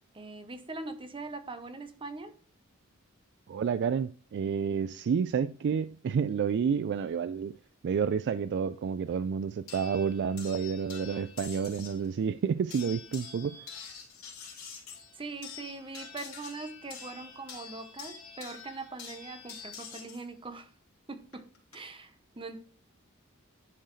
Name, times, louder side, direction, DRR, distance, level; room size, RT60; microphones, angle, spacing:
voice 1, 0.1-2.3 15.1-20.7 21.1-22.6, right 3 dB, 25° right, 0.9 m, -42 dB
voice 2, 3.5-7.5 7.8-13.6, right 6 dB, 55° right, 0.3 m, -30 dB
sound 1, 9.7-12.0 12.7-20.2 21.3-21.7, left 6 dB, 75° left, 2.7 m, -46 dB
10.5 x 4.5 x 3.1 m
head